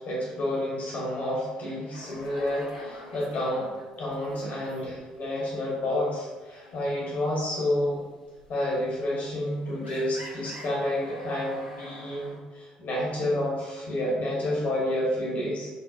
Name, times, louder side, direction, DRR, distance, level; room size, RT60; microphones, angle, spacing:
voice 1, 0.0-3.7 4.0-8.0 8.5-15.7, left 1 dB, 55° left, -5 dB, 1.3 m, -29 dB
sound 1, 1.9-5.3 5.5-5.8 6.2-12.4, left 1 dB, 90° left, 0.5 m, -46 dB
5.8 x 2.8 x 2.6 m, 1.3 s
figure-of-eight pair, 50°, 4 cm